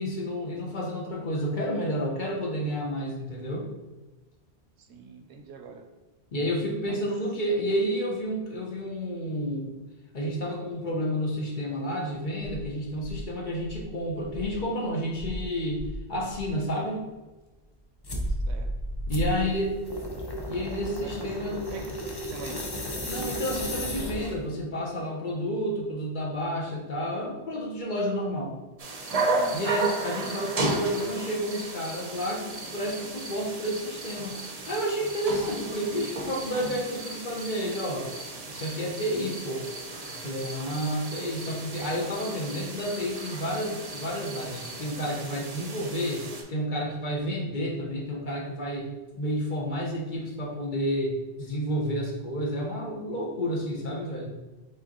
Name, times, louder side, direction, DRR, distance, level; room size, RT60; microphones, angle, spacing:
voice 1, 0.0-3.7 6.3-9.8 10.1-17.0 19.1-19.7 20.4-21.6 23.0-28.6 29.5-34.4 34.7-38.1 38.5-39.7 40.2-54.4, equal, 50° left, -3 dB, 1.0 m, -30 dB
voice 2, 4.8-5.9 6.9-7.1 18.5-18.7 19.4-19.5 21.0-22.6 29.3-29.8 30.2-30.4, right 5 dB, 75° right, 4 dB, 0.8 m, -43 dB
Insect, 12.4-14.7 15.1-16.6 18.2-19.9, equal, 70° left, 1.0 m, -35 dB
sound 1, 18.0-18.3 19.1-24.5, left 1 dB, 30° left, 0.5 m, -34 dB
sound 2, 28.8-46.4, right 2 dB, 45° right, 0.6 m, -34 dB
4.7 x 3.8 x 2.9 m, 1.2 s
omnidirectional pair, 1.1 m